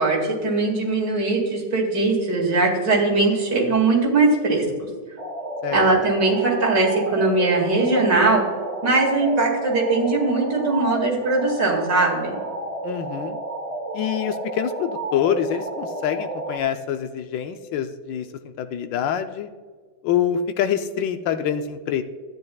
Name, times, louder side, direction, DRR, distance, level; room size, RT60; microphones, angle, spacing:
voice 1, 0.0-4.6 5.7-8.4 8.8-12.3, right 3 dB, 75° right, -2 dB, 2.7 m, -20 dB
sound 1, 5.2-16.6, right 1 dB, 35° right, 0.6 m, -31 dB
voice 2, 12.8-13.4 13.9-18.3 18.6-19.5 20.0-22.0, left 9 dB, 85° left, 7 dB, 1.3 m, -25 dB
13.0 x 9.7 x 2.3 m, 1.6 s
omnidirectional pair, 1.9 m